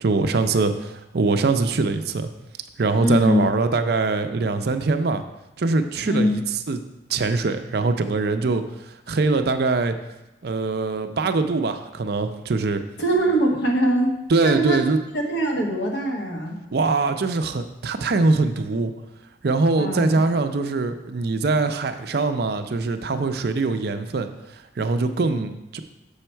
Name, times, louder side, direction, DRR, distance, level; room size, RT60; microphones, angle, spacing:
voice 1, 0.0-2.3 2.8-5.2 5.6-6.8 7.1-10.0 10.4-12.8 14.3-15.0 16.7-18.9 19.4-25.8, right 3 dB, 55° right, 8 dB, 0.5 m, -23 dB
voice 2, 3.0-3.5 6.0-6.4 13.0-14.8 15.1-16.6 19.8-20.1, right 1 dB, 60° left, 0 dB, 1.4 m, -22 dB
6.9 x 5.6 x 4.5 m, 0.95 s
head